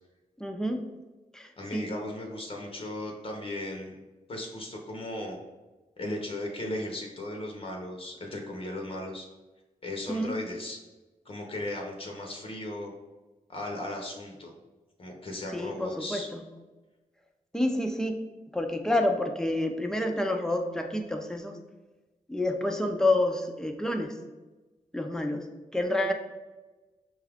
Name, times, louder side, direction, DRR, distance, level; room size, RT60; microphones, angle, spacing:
voice 1, 0.4-0.8 1.3-1.9 10.1-10.3 15.5-16.4 17.5-18.2 18.5-21.6 22.3-24.1 24.9-25.4 25.7-26.1, left 1 dB, 5° left, 4 dB, 0.5 m, -28 dB
voice 2, 1.6-3.9 4.3-5.4 6.0-9.3 9.8-10.8 11.2-12.9 13.5-14.5 15.0-16.3, left 1 dB, 45° left, 1 dB, 0.7 m, -36 dB
5.4 x 2.4 x 3.4 m, 1.2 s
wide cardioid pair, 105°, 14 cm